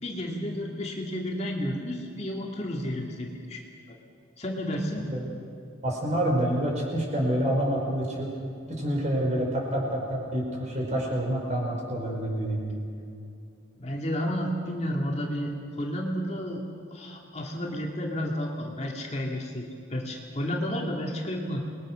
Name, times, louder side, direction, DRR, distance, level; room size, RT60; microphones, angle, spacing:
voice 1, 0.0-3.6 3.9-4.0 4.4-5.1 10.9-11.0 13.8-16.6 16.9-21.6, equal, 30° left, 0 dB, 2.3 m, -31 dB
voice 2, 5.8-8.3 8.7-12.9, right 1 dB, 35° right, -1 dB, 5.6 m, -27 dB
28.5 x 21.0 x 6.4 m, 2.5 s
head